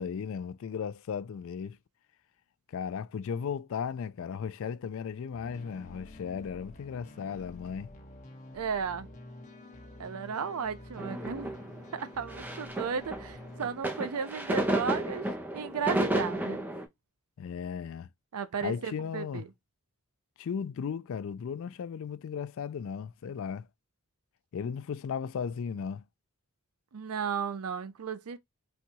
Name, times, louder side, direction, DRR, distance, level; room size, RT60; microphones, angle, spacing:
voice 1, 0.0-1.8 2.7-7.9 17.4-18.1 18.6-19.4 20.4-23.7 24.5-26.0, left 6 dB, 60° left, 0.3 m, -36 dB
sound 1, 5.3-13.8, left 1 dB, 35° left, 0.9 m, -48 dB
voice 2, 8.5-9.1 10.0-11.5 11.9-15.2 15.5-16.6 18.3-19.5 26.9-28.4, right 6 dB, 80° right, 0.5 m, -34 dB
sound 2, 11.0-16.8, right 1 dB, 10° right, 0.5 m, -32 dB
4.2 x 2.3 x 2.7 m
head